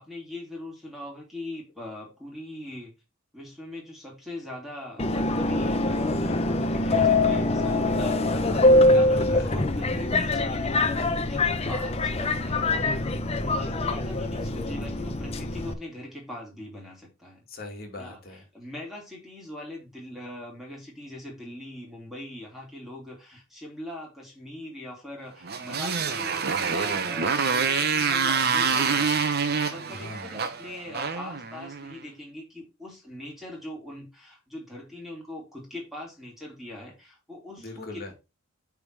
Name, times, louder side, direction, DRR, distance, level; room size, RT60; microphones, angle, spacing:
voice 1, 0.0-2.9 3.3-8.2 8.9-12.8 13.4-17.4 17.9-38.1, left 1 dB, ahead, 3.0 m, -41 dB
Subway metro underground, 5.0-15.7, left 2 dB, 30° left, 0.7 m, -24 dB
voice 2, 8.3-9.6 17.5-18.4 29.9-30.3 37.6-38.1, left 2 dB, 45° left, 2.3 m, -40 dB
Motorcycle, 25.4-32.0, right 5 dB, 50° right, 0.9 m, -26 dB
8.9 x 3.7 x 4.7 m
head